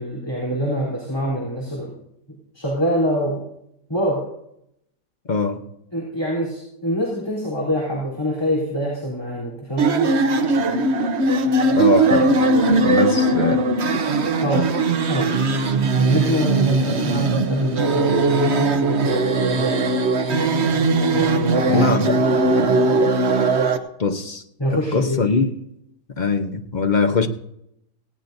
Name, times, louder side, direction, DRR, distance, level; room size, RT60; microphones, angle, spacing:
voice 1, 0.0-1.9 2.5-3.4 3.9-4.2 5.9-10.1 14.4-14.7 15.1-15.3 16.0-20.0 21.1-21.9 24.6-25.3, equal, 15° left, 3.6 m, -24 dB
voice 2, 5.3-5.6 11.7-13.6 21.7-22.4 24.0-24.4 24.7-25.5 26.2-27.3, left 4 dB, 40° left, 0.7 m, -22 dB
sound 1, 9.8-23.8, right 3 dB, 45° right, 1.0 m, -19 dB
18.5 x 16.5 x 2.7 m
omnidirectional pair, 1.8 m